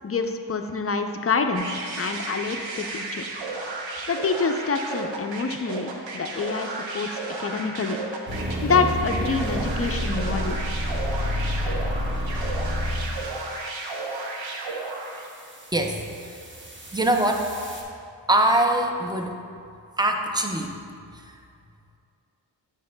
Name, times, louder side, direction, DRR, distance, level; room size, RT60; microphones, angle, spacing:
voice 1, 0.0-3.2 4.1-8.0 8.6-10.6, left 4 dB, 30° left, 5 dB, 0.5 m, -27 dB
sound 1, 1.5-15.4, right 3 dB, 80° right, 0.8 m, -33 dB
sound 2, 8.3-13.5 15.2-17.8, equal, 25° right, 1.0 m, -30 dB
voice 2, 15.7-16.4 16.9-17.5 18.3-19.3 20.0-20.7 21.1-21.3, right 1 dB, 10° right, 3 dB, 0.6 m, -23 dB
11.0 x 4.8 x 2.2 m, 2.4 s
cardioid pair, 55°, 45 cm